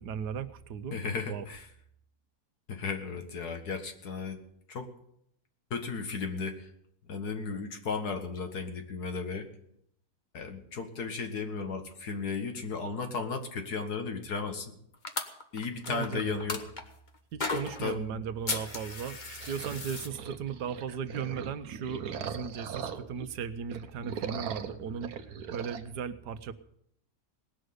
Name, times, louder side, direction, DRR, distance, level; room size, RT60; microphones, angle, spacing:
voice 1, 0.0-1.0 1.2-1.5 15.9-16.6 17.3-25.1 25.5-26.5, right 7 dB, 90° right, 12 dB, 1.5 m, -37 dB
voice 2, 0.9-1.7 2.7-4.4 4.7-4.9 5.7-6.7 7.1-9.5 10.3-14.7 15.5-16.6 17.8-18.3, left 5 dB, 75° left, 6 dB, 2.2 m, -35 dB
sound 1, 15.0-16.8 17.4-18.0 18.5-20.1, left 3 dB, 30° left, 1.3 m, -35 dB
sound 2, 19.4-23.3 23.6-25.8, right 7 dB, 70° right, 1.4 m, -40 dB
19.0 x 6.5 x 9.5 m, 0.72 s
omnidirectional pair, 1.7 m